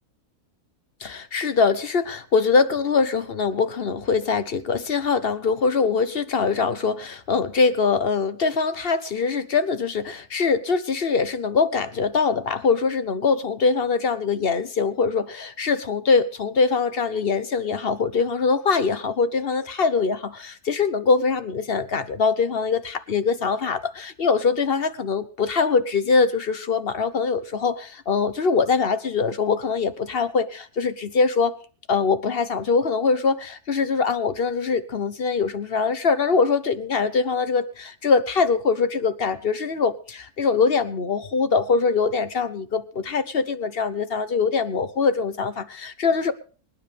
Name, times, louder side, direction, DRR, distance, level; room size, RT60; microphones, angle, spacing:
voice 1, 1.0-31.6 31.9-46.3, left 5 dB, 45° left, 12 dB, 1.1 m, -23 dB
25.0 x 9.8 x 3.4 m, 0.40 s
omnidirectional pair, 1.6 m